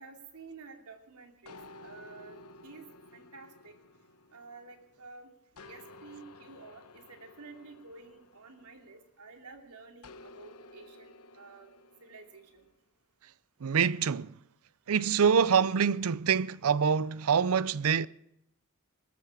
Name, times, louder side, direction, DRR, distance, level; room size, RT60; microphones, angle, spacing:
voice 1, 0.0-2.9 3.1-3.7 4.3-5.3 5.6-11.7 12.0-12.7, right 4 dB, 90° right, 2.8 m, -51 dB
sound 1, 1.5-5.0 5.6-9.3 10.0-12.7, left 2 dB, 85° left, 1.0 m, -53 dB
voice 2, 13.6-14.4 14.9-18.1, right 6 dB, 70° right, 0.5 m, -25 dB
18.5 x 14.5 x 4.9 m
head